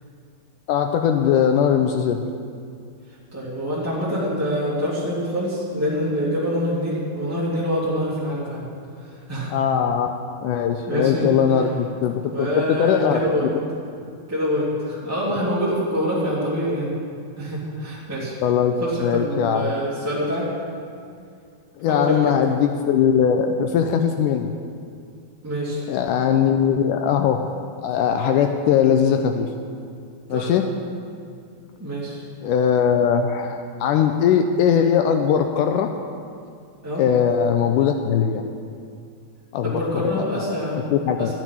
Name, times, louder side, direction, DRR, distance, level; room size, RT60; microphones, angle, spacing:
voice 1, 0.7-2.3 9.5-10.1 10.4-13.2 18.4-18.8 19.0-19.6 21.8-24.5 25.9-27.4 27.8-29.5 30.3-30.7 32.4-35.9 37.0-38.5 39.5-40.4 40.7-41.3, left 8 dB, 85° left, 5 dB, 1.8 m, -20 dB
voice 2, 3.3-8.7 9.0-9.5 10.9-11.3 12.3-13.5 14.3-17.0 17.4-18.4 18.8-20.5 21.9-22.3 25.4-25.8 30.3-30.5 31.8-32.2 36.8-37.0 39.6-41.3, equal, 5° right, -9 dB, 1.9 m, -25 dB
13.5 x 6.2 x 9.7 m, 2.3 s
omnidirectional pair, 4.2 m